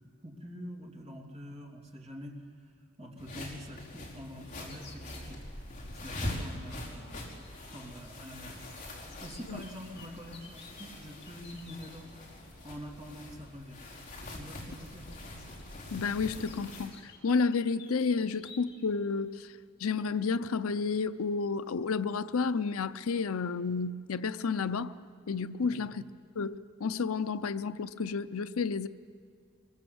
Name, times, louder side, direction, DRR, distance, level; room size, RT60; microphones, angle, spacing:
voice 1, 0.0-2.7 3.0-5.6 6.0-8.6 9.2-12.2 12.6-13.8 14.3-15.1 18.3-18.4 25.6-25.9, equal, 30° right, 2.9 m, -46 dB
sound 1, 3.2-16.9, left 1 dB, 35° left, 4.7 m, -43 dB
sound 2, 4.7-5.3 7.2-8.2 8.5-11.9 13.3-13.5 14.7-18.9 19.3-19.4 20.8-20.9 21.5-21.8 22.1-22.3, left 5 dB, 50° left, 2.5 m, -55 dB
voice 2, 15.9-19.5 19.8-24.9 25.3-26.0 26.4-28.9, left 4 dB, 75° left, 0.6 m, -31 dB
23.5 x 22.5 x 7.8 m
head